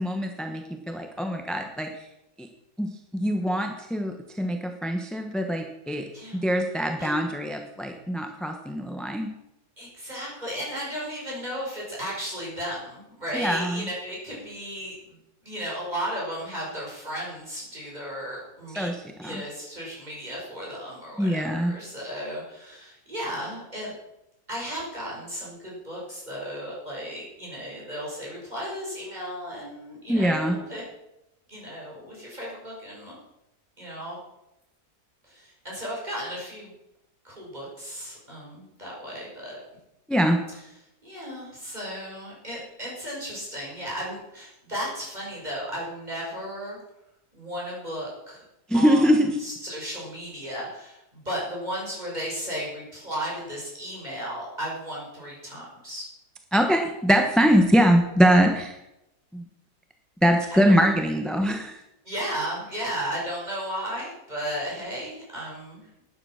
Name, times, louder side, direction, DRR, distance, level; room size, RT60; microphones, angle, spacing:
voice 1, 0.0-2.1 2.4-2.5 2.8-6.1 6.3-9.3 13.3-13.9 18.8-19.0 19.2-19.4 21.2-21.7 30.1-30.6 40.1-40.4 48.7-49.4 56.5-58.8 59.3-59.5 60.2-61.8, equal, ahead, 4 dB, 0.7 m, -23 dB
voice 2, 6.1-6.4 7.0-7.1 9.8-15.2 15.4-18.9 19.2-23.9 24.5-30.8 31.5-33.2 33.8-34.2 35.2-36.7 37.2-39.6 41.0-46.8 47.3-48.4 48.7-49.1 49.4-56.0 60.5-60.7 62.0-65.9, equal, 25° right, -4 dB, 5.8 m, -35 dB
11.5 x 9.8 x 6.4 m, 0.87 s
omnidirectional pair, 1.7 m